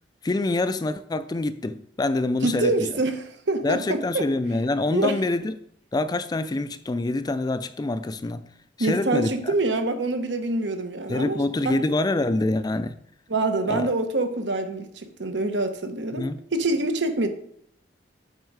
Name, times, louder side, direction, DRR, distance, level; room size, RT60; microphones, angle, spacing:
voice 1, 0.2-2.9 3.6-5.5 5.9-8.4 8.8-9.5 11.1-12.9 13.7-13.9 16.1-16.4, left 2 dB, 20° left, 0.4 m, -26 dB
voice 2, 2.4-4.3 4.9-5.1 8.8-11.4 11.6-11.8 13.3-17.3, right 2 dB, 75° right, 1.0 m, -25 dB
7.9 x 5.3 x 4.7 m
head